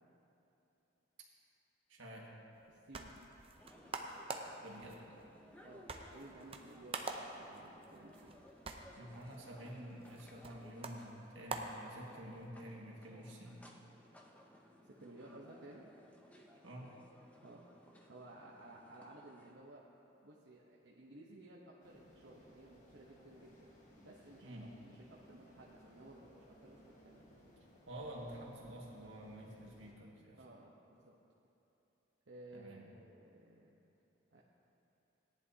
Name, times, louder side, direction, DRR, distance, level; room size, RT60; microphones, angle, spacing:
voice 1, 1.9-2.3 4.6-5.0 9.0-13.6 16.6-16.9 24.4-24.7 27.9-30.4 32.5-32.9, equal, 85° right, -2 dB, 1.8 m, -49 dB
sound 1, 2.5-12.5, right 3 dB, 30° right, 0.6 m, -48 dB
voice 2, 2.7-3.1 5.6-8.4 14.8-15.9 17.4-17.6 18.1-19.8 20.2-23.7 24.0-24.6 24.8-27.5 30.4-31.1 32.3-33.8 34.3-34.4, right 2 dB, 70° right, -4 dB, 0.9 m, -56 dB
sound 2, 3.6-19.5, equal, 10° left, 0.7 m, -61 dB
sound 3, 21.8-29.9, left 1 dB, 40° left, 1.4 m, -63 dB
17.5 x 10.5 x 2.8 m, 2.9 s
head